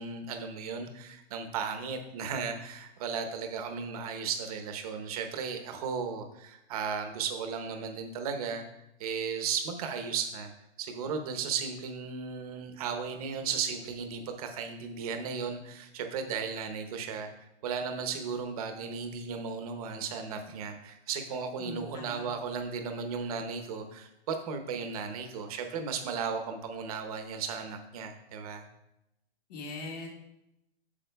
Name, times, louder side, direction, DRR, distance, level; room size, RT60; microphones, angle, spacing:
voice 1, 0.0-8.6 9.0-10.5 10.8-17.3 17.6-28.6, right 6 dB, 35° right, 6 dB, 0.9 m, -35 dB
voice 2, 21.6-22.2 29.5-30.1, left 3 dB, 40° left, 1 dB, 1.6 m, -41 dB
8.6 x 7.4 x 2.3 m, 0.86 s
hypercardioid pair, 155°, 32 cm